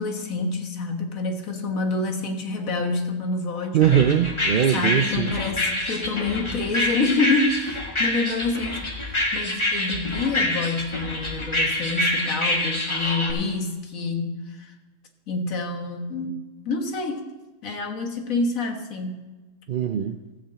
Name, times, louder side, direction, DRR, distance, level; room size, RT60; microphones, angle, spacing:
voice 1, 0.0-4.1 4.7-14.7 15.3-17.2 17.6-19.2, left 3 dB, 85° left, 4 dB, 1.7 m, -27 dB
voice 2, 3.7-5.3 19.7-20.2, right 9 dB, 60° right, 7 dB, 0.5 m, -21 dB
sound 1, 3.8-13.3, left 1 dB, 20° left, 1.5 m, -26 dB
15.0 x 5.2 x 7.4 m, 1.2 s
omnidirectional pair, 1.4 m